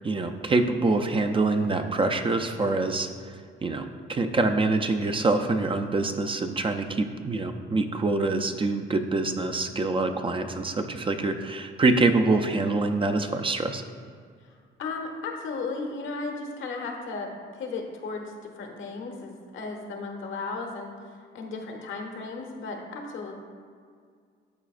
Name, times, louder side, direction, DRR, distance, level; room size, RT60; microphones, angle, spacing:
voice 1, 0.0-3.1 3.6-13.8, right 3 dB, 25° right, 6 dB, 0.4 m, -25 dB
voice 2, 14.5-20.9 21.3-23.3, left 3 dB, 75° left, 2 dB, 1.1 m, -35 dB
12.0 x 4.1 x 2.5 m, 2.1 s
cardioid pair, 90°, 20 cm